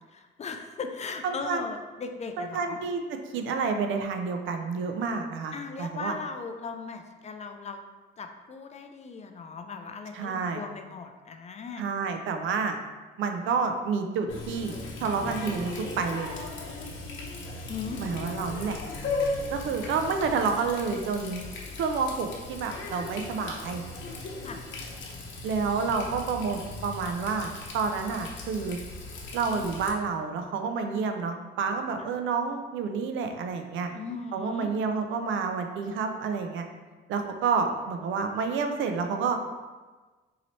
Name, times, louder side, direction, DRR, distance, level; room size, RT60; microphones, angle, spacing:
voice 1, 0.1-2.8 5.5-7.8 8.2-11.8 17.7-18.0 24.4-24.6 32.0-32.1 33.9-34.7, left 4 dB, 35° left, 6 dB, 0.4 m, -38 dB
voice 2, 1.2-1.6 2.4-3.0 3.3-6.1 10.1-10.6 11.8-12.8 13.2-16.4 18.0-18.8 19.5-21.4 21.8-23.8 25.4-28.8 29.3-33.9 34.3-36.7 37.1-39.4, right 5 dB, 80° right, 5 dB, 0.5 m, -29 dB
Water tap faucet, 14.3-29.9, left 3 dB, 70° left, 0.7 m, -37 dB
4.0 x 2.8 x 3.0 m, 1.3 s
cardioid pair, 90°, 20 cm